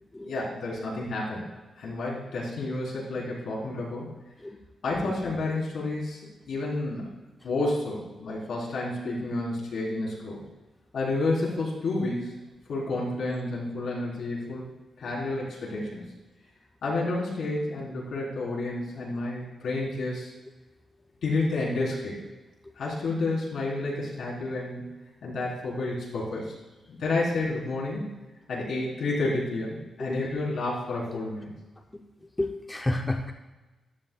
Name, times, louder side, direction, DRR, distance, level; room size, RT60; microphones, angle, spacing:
voice 1, 0.2-1.5 1.8-4.1 4.8-6.2 6.5-7.1 7.4-10.4 10.9-12.3 12.7-14.7 15.0-16.0 16.8-20.3 21.2-22.1 22.8-24.9 25.2-26.6 26.9-28.1 28.5-31.5, left 2 dB, 75° left, -4 dB, 4.0 m, -30 dB
voice 2, 32.4-33.3, left 2 dB, 15° left, 3 dB, 0.6 m, -30 dB
14.0 x 12.0 x 2.4 m, 1.1 s
wide cardioid pair, 150°, 0 cm